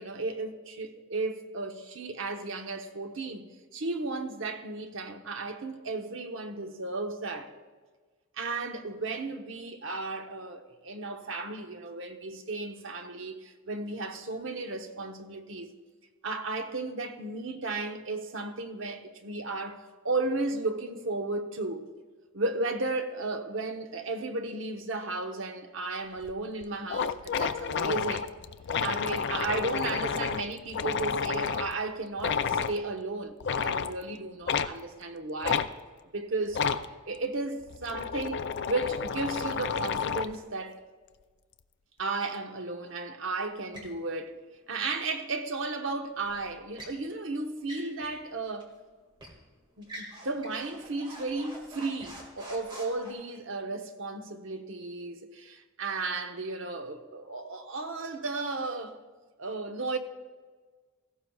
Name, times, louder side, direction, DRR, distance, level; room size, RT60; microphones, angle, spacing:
voice 1, 0.0-7.5 8.4-15.7 16.2-21.8 22.3-28.3 28.8-35.7 36.1-36.6 37.1-40.8 42.0-44.3 44.7-48.7 49.8-59.0 59.4-60.0, right 3 dB, 60° right, 1.0 m, -34 dB
sound 1, 26.2-26.3 26.6-26.7 26.9-31.7 32.2-32.8 33.4-33.9 34.5-34.7 35.4-35.7 36.5-36.9 37.6-40.4, left 6 dB, 55° left, 0.4 m, -30 dB
sound 2, 43.7-44.0 46.2-47.0 47.6-48.3 48.6-48.7 49.2-49.4 49.8-53.1, equal, 20° right, 1.9 m, -46 dB
16.5 x 14.5 x 2.3 m
head